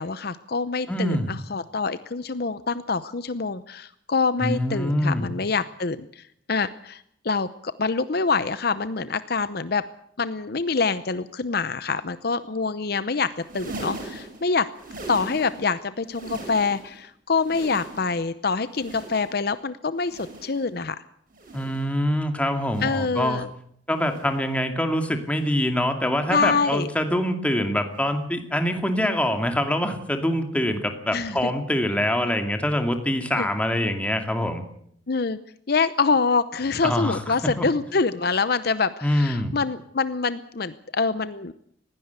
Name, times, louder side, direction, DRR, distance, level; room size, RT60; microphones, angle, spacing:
voice 1, 0.0-6.2 6.5-9.8 10.2-13.3 13.5-14.7 15.1-21.0 22.8-23.5 26.3-26.9 31.1-31.4 33.4-33.5 35.1-35.4 35.7-41.5, left 4 dB, 55° left, 14 dB, 0.7 m, -25 dB
voice 2, 0.9-1.3 4.4-5.3 21.5-23.5 23.9-34.6 36.8-37.7 39.0-39.5, equal, 5° left, 6 dB, 2.4 m, -24 dB
sound 1, 13.3-15.7 16.0-17.0 17.3-18.3 18.7-19.5 20.0-20.7 21.3-22.0 22.6-23.2 23.9-24.5 25.3-25.7 26.6-26.9 27.9-28.1 29.3-29.4, right 2 dB, 45° right, 7.0 m, -40 dB
20.0 x 16.5 x 8.2 m, 0.68 s
head